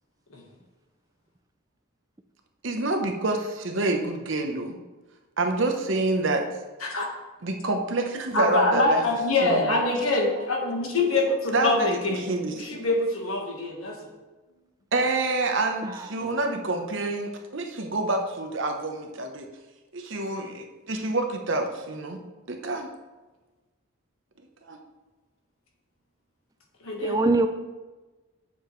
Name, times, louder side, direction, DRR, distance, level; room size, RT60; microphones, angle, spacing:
voice 1, 2.6-4.8 5.4-6.4 7.4-9.0 9.4-9.9 11.5-12.8 14.9-19.5 19.9-22.2 22.5-22.9 24.6-24.8, right 2 dB, 65° right, 4 dB, 0.9 m, -27 dB
voice 2, 8.3-12.2 12.5-14.0 26.8-27.2, left 2 dB, 85° left, 1 dB, 1.5 m, -24 dB
voice 3, 15.8-16.4 27.0-27.5, right 3 dB, 15° right, 8 dB, 0.3 m, -25 dB
8.4 x 7.2 x 3.2 m, 1.2 s
head